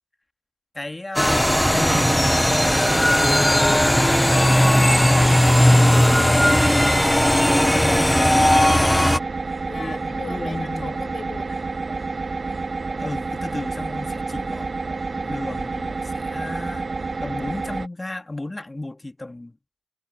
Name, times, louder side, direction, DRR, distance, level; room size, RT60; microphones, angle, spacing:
voice 1, 0.7-2.1 7.8-8.0 9.7-11.0 13.0-14.7 15.2-16.9 17.2-19.5, left 2 dB, 25° left, 2.0 m, -34 dB
sound 1, 1.2-9.2, left 1 dB, 10° left, 0.6 m, -17 dB
sound 2, 1.2-17.9, right 3 dB, 50° right, 3.2 m, -29 dB
sound 3, 1.9-5.9 6.3-6.5 7.2-7.5, right 5 dB, 70° right, 3.7 m, -40 dB
voice 2, 3.3-4.8 5.9-8.8 9.7-11.6 15.1-15.7, left 4 dB, 55° left, 5.1 m, -40 dB
cardioid pair, 50°, 0 cm